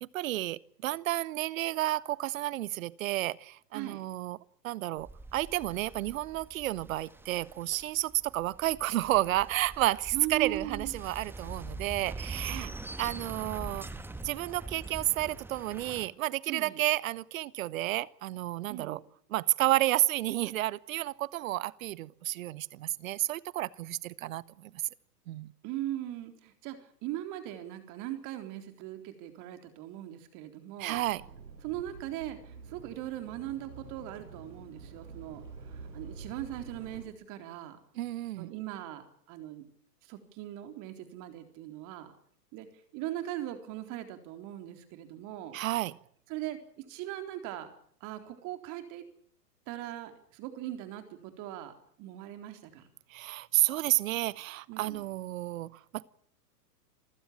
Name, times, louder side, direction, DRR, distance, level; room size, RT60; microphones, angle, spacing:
voice 1, 0.0-4.4 4.6-12.7 13.0-13.9 14.2-19.0 19.3-24.8 25.3-25.5 30.8-31.3 37.9-38.5 45.5-46.0 53.1-56.0, right 15 dB, 55° right, 1.0 m, -31 dB
sound 1, 5.0-16.1, right 2 dB, 5° right, 1.3 m, -44 dB
voice 2, 10.1-10.9 12.5-12.7 16.5-16.8 18.7-19.0 25.6-31.0 31.6-35.4 35.9-37.8 38.4-39.6 40.1-42.1 42.5-45.6 46.3-47.7 48.0-49.0 49.7-52.9 54.7-55.0, right 13 dB, 40° right, 4.0 m, -40 dB
sound 2, 30.9-37.0, right 4 dB, 85° right, 6.1 m, -48 dB
27.0 x 15.5 x 8.9 m
hypercardioid pair, 110°, 48 cm